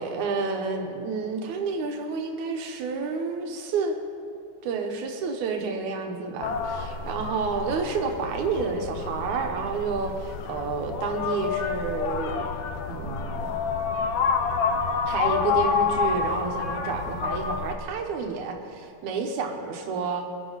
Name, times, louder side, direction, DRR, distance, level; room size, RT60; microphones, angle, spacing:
voice 1, 0.0-4.0 4.6-12.5 12.9-13.6 15.1-20.3, right 4 dB, 90° right, 3 dB, 2.5 m, -30 dB
sound 1, 6.4-17.7, left 5 dB, 75° left, 1.1 m, -28 dB
23.0 x 10.5 x 4.0 m, 2.5 s
omnidirectional pair, 3.3 m